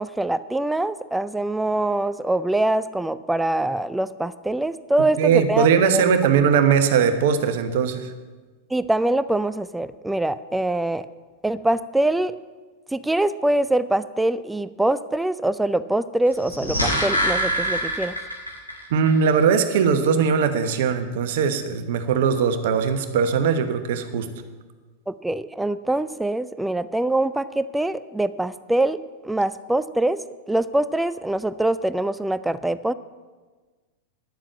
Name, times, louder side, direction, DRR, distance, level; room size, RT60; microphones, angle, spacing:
voice 1, 0.0-5.7 5.9-6.0 8.7-11.1 11.4-12.3 12.9-18.2 25.1-30.2 30.5-32.9, right 1 dB, 5° right, 15 dB, 0.4 m, -24 dB
voice 2, 5.2-8.1 18.9-24.3, right 6 dB, 55° right, 9 dB, 1.0 m, -20 dB
sound 1, 16.3-18.8 19.1-19.2, equal, 85° left, 2.3 m, -24 dB
10.5 x 7.5 x 8.3 m, 1.4 s
figure-of-eight pair, 90°, 0 cm